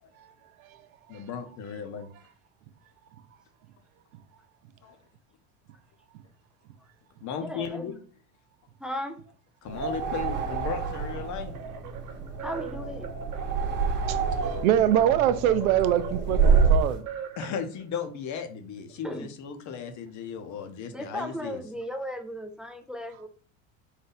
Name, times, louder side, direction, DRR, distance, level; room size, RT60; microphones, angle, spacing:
voice 1, 0.2-1.3 4.1-4.2 6.1-6.2 14.0-17.1, right 11 dB, 85° right, 0.6 m, -25 dB
voice 2, 1.1-2.1 4.8-5.0 7.2-7.9 9.6-11.6 17.4-21.6, left 7 dB, 45° left, 0.8 m, -36 dB
voice 3, 7.4-8.0 8.8-9.2 12.4-13.1 19.0-19.3 20.9-23.3, equal, ahead, 0.3 m, -36 dB
sound 1, 9.7-17.0, right 5 dB, 25° right, 1.1 m, -27 dB
sound 2, 9.7-18.0, right 8 dB, 50° right, 0.8 m, -42 dB
4.1 x 2.6 x 3.9 m
supercardioid pair, 105°, 41 cm